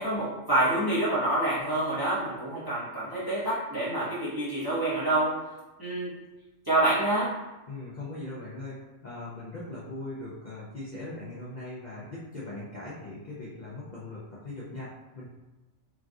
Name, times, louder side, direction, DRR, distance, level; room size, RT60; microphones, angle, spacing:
voice 1, 0.0-5.4 5.8-6.1 6.7-7.4, right 1 dB, 25° right, -9 dB, 0.6 m, -27 dB
voice 2, 7.7-15.3, left 2 dB, 50° left, -8 dB, 0.6 m, -40 dB
3.2 x 2.4 x 2.5 m, 1.1 s
omnidirectional pair, 1.3 m